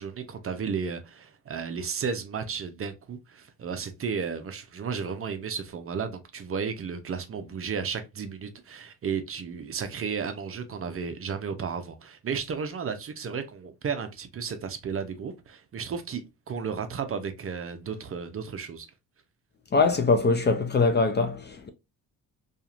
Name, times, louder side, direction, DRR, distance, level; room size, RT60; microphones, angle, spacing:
voice 1, 0.0-18.9, right 6 dB, 35° right, 0.5 m, -33 dB
voice 2, 19.7-21.7, left 3 dB, 30° left, 0.4 m, -22 dB
2.8 x 2.4 x 2.4 m
supercardioid pair, 70°, 39 cm